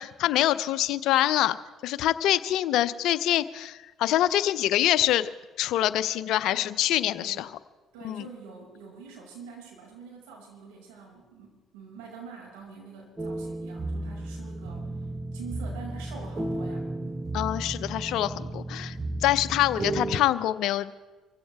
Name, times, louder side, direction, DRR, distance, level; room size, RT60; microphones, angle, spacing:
voice 1, 0.0-1.6 1.8-5.3 5.6-7.5 8.0-8.3 17.3-19.0 19.2-20.9, left 13 dB, 70° left, 13 dB, 0.6 m, -25 dB
voice 2, 6.5-7.5 7.9-15.1 15.3-17.3, right 5 dB, 85° right, -2 dB, 6.0 m, -46 dB
sound 1, 13.2-20.2, right 2 dB, 25° right, 1.2 m, -34 dB
24.5 x 16.0 x 3.5 m, 1.2 s
hypercardioid pair, 60°, 0 cm